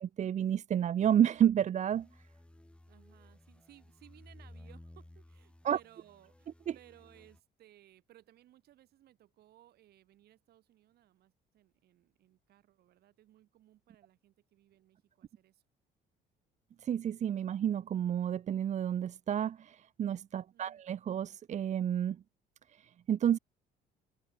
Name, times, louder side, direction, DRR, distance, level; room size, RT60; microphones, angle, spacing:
voice 1, 0.0-2.1 5.6-5.8 6.7-6.8 16.8-22.2 22.7-23.4, right 9 dB, 45° right, 0.8 m, -30 dB
sound 1, 1.9-7.4, left 1 dB, 5° left, 2.6 m, -56 dB
voice 2, 2.9-15.6 20.5-20.9, right 13 dB, 70° right, 7.9 m, -62 dB
cardioid pair, 110°, 17 cm